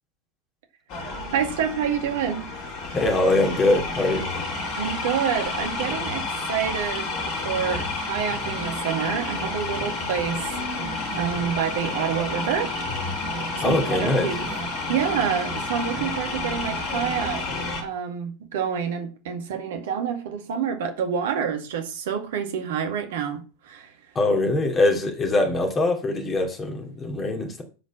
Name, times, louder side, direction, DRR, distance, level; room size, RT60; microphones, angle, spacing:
sound 1, 0.9-17.8, left 3 dB, 45° left, 4.4 m, -30 dB
voice 1, 1.3-2.4 4.8-6.2 6.5-12.7 13.6-14.4 14.9-17.4 17.8-23.9, right 8 dB, 55° right, 2.1 m, -28 dB
voice 2, 2.9-4.3 13.6-14.3 24.1-27.6, left 2 dB, 20° left, 2.7 m, -22 dB
14.5 x 5.3 x 6.0 m
figure-of-eight pair, 90°, 0 cm